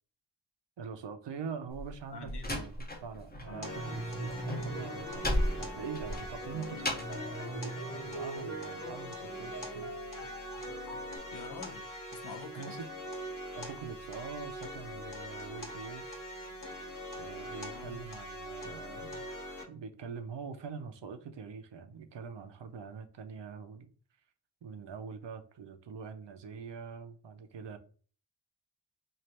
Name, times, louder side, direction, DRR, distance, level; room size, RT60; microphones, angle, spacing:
voice 1, 0.8-5.3 5.6-9.9 12.5-12.9 13.5-16.1 17.2-19.3 19.7-23.9 24.6-27.8, right 6 dB, 75° right, 0.6 m, -44 dB
Slam, 1.7-3.5 3.8-7.3, left 1 dB, 20° left, 0.8 m, -35 dB
voice 2, 2.1-2.6 11.3-12.7 17.7-18.2, left 5 dB, 65° left, 0.8 m, -46 dB
sound 1, 3.5-11.2, right 1 dB, 85° left, 1.5 m, -42 dB
sound 2, 3.6-19.6, equal, 50° left, 1.2 m, -43 dB
3.2 x 2.5 x 4.2 m
wide cardioid pair, 90°, 43 cm